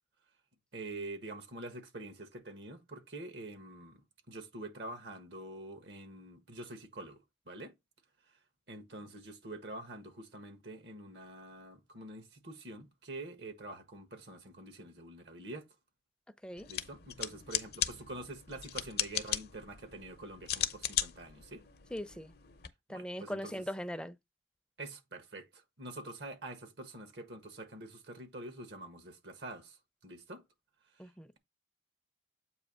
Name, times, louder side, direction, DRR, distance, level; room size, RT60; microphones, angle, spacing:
voice 1, 0.7-7.2 7.4-7.7 8.7-15.7 16.7-21.6 22.9-23.5 24.8-29.8 30.0-30.4, right 2 dB, 65° right, 1.6 m, -46 dB
sound 1, 16.6-22.7, left 11 dB, 55° left, 0.7 m, -38 dB
voice 2, 21.9-22.3 22.9-24.2 31.0-31.3, equal, 5° left, 0.6 m, -40 dB
8.1 x 2.8 x 5.4 m
head